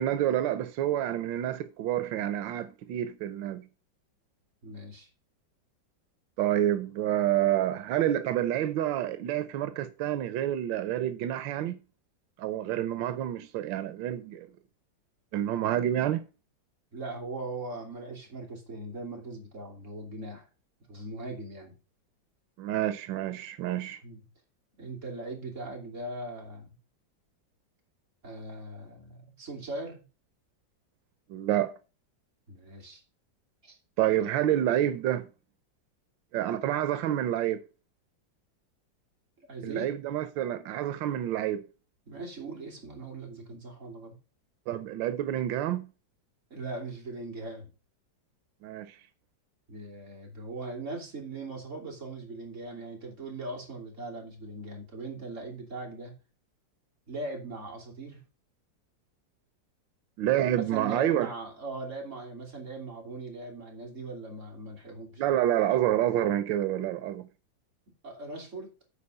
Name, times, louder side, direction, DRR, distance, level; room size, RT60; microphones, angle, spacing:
voice 1, 0.0-3.7 6.4-11.8 12.4-14.5 15.3-16.2 22.6-24.0 31.3-31.7 34.0-35.3 36.3-37.6 39.6-41.6 44.7-45.9 48.6-49.0 60.2-61.3 65.2-67.3, right 12 dB, 90° right, 1.4 m, -28 dB
voice 2, 4.6-5.1 16.9-20.5 20.9-21.8 24.0-24.2 24.8-26.8 28.2-30.0 32.5-33.0 33.6-33.8 39.5-39.9 42.1-44.2 46.5-47.7 49.7-56.2 57.1-58.2 60.3-65.2 68.0-68.7, right 2 dB, 40° right, 3.1 m, -40 dB
8.4 x 4.7 x 6.5 m
omnidirectional pair, 2.0 m